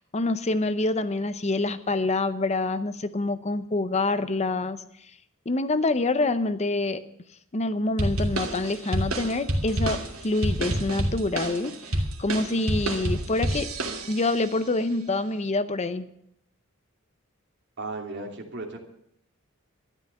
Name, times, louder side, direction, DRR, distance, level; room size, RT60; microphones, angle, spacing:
voice 1, 0.1-4.8 5.5-7.0 7.5-13.7 14.1-16.1, left 2 dB, 30° left, 12 dB, 0.7 m, -26 dB
sound 1, 8.0-14.4, right 1 dB, 75° right, 2.7 m, -28 dB
voice 2, 17.8-18.8, right 2 dB, 55° right, 3 dB, 2.8 m, -35 dB
13.0 x 11.5 x 6.9 m, 0.75 s
head